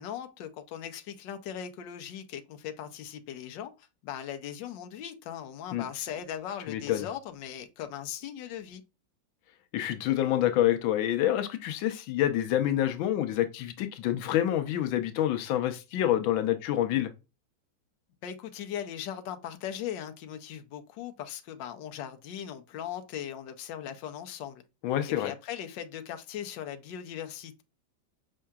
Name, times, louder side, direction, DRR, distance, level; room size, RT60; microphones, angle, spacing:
voice 1, 0.0-8.8 18.2-24.6 25.2-27.6, left 9 dB, 75° left, 1.4 m, -39 dB
voice 2, 6.7-7.1 9.7-17.1 24.8-25.3, left 12 dB, 90° left, 1.5 m, -27 dB
5.4 x 3.7 x 2.3 m
omnidirectional pair, 2.1 m